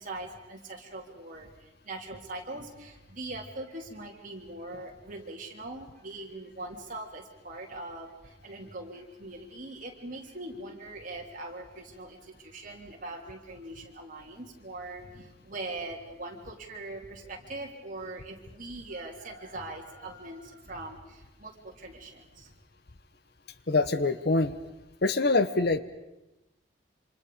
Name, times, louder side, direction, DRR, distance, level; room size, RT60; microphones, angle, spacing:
voice 1, 0.0-22.6, right 2 dB, 40° right, 0 dB, 3.6 m, -41 dB
voice 2, 23.7-24.6 25.0-25.8, left 3 dB, 55° left, 12 dB, 1.0 m, -24 dB
27.5 x 27.0 x 5.2 m, 0.98 s
head